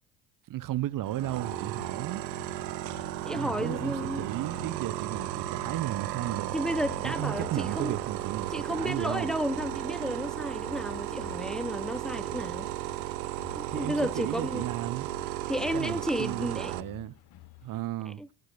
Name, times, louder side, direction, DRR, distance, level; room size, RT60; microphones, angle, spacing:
voice 1, 0.5-2.2 3.3-6.5 7.0-9.3 13.7-15.1 15.7-17.1 17.6-18.2, right 14 dB, 40° right, 0.8 m, -34 dB
sound 1, 0.7-17.8, left 15 dB, 50° left, 1.0 m, -50 dB
sound 2, 1.1-16.8, right 16 dB, 85° right, 0.8 m, -35 dB
voice 2, 3.2-4.3 6.5-8.0 8.5-12.7 13.6-14.7 15.5-16.8 18.1-18.3, equal, ahead, 0.7 m, -32 dB
14.5 x 6.3 x 6.7 m
hypercardioid pair, 70°, 50 cm